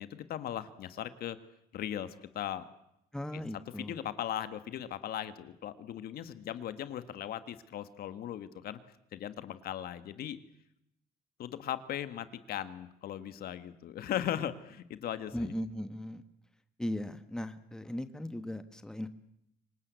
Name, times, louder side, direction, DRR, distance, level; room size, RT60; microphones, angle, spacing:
voice 1, 0.0-1.4 1.7-2.7 3.8-8.8 9.1-10.4 11.4-15.5, left 11 dB, 65° left, 12 dB, 1.6 m, -38 dB
voice 2, 3.1-4.0 15.3-16.2 16.8-19.1, left 1 dB, 5° left, 10 dB, 1.4 m, -38 dB
26.0 x 19.0 x 8.2 m, 0.78 s
cardioid pair, 110°, 17 cm